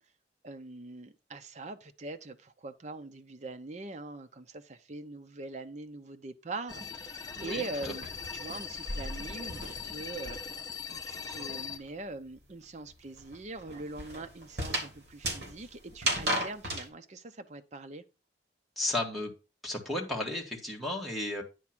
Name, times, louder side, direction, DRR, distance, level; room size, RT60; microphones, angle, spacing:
voice 1, 0.4-8.1 8.3-18.0, right 2 dB, 40° right, 0.7 m, -43 dB
sound 1, 6.7-11.8, left 6 dB, 20° left, 0.9 m, -40 dB
sound 2, 7.0-10.7 11.0-16.9, right 1 dB, 65° right, 3.0 m, -37 dB
voice 2, 7.4-7.9 18.8-19.3 19.6-21.4, left 1 dB, ahead, 1.9 m, -34 dB
10.0 x 3.6 x 6.0 m
head